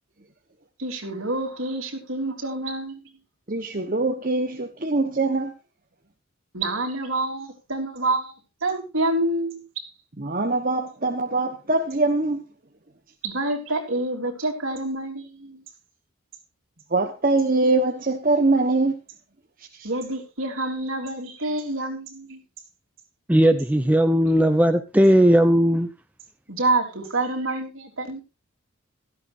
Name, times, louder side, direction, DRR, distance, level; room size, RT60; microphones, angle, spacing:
voice 1, 0.8-3.0 6.5-8.3 8.6-9.8 13.2-15.6 19.8-22.4 26.5-28.2, right 2 dB, 65° right, 3.7 m, -27 dB
voice 2, 3.5-5.5 10.2-12.4 16.9-18.9, right 2 dB, 40° right, 1.2 m, -23 dB
voice 3, 23.3-25.9, equal, 5° right, 0.7 m, -17 dB
16.5 x 14.0 x 2.7 m
head